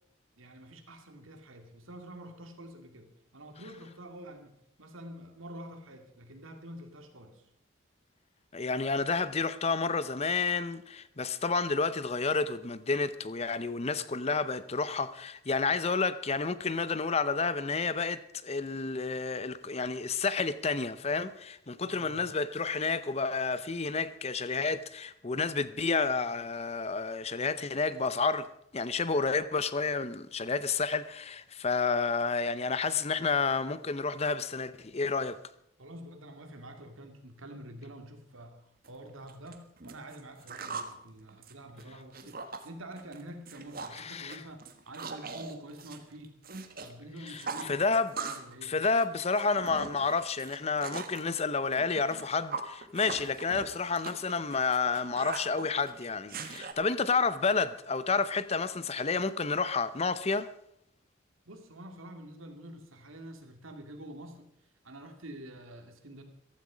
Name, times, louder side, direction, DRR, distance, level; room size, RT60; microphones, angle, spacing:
voice 1, 0.4-7.5 21.8-22.3 35.8-38.6 38.9-46.3 46.8-47.8 48.2-48.8 61.5-64.5 64.8-66.2, right 1 dB, 85° right, 2.4 m, -47 dB
voice 2, 8.5-28.4 28.7-35.4 43.9-44.4 47.3-48.1 48.6-60.5, left 4 dB, 30° left, 0.6 m, -30 dB
sound 1, 38.8-38.9 39.3-40.9 41.3-42.7 43.0-43.2 43.5-44.0 44.3-46.9 47.2-48.5 48.8-51.2 51.7-56.7, right 4 dB, 45° right, 1.4 m, -40 dB
15.0 x 13.5 x 5.1 m
head